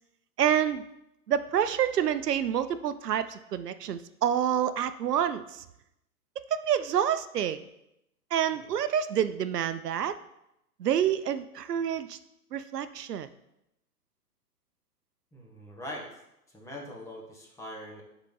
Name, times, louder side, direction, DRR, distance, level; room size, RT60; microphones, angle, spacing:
voice 1, 0.4-0.8 1.3-5.6 6.4-7.7 8.3-10.2 10.8-12.2 12.5-13.3, right 9 dB, 75° right, 13 dB, 0.6 m, -28 dB
voice 2, 15.3-16.2 16.5-18.0, left 1 dB, 5° left, -2 dB, 1.0 m, -42 dB
11.5 x 4.0 x 3.9 m, 0.85 s
hypercardioid pair, 130°, 47 cm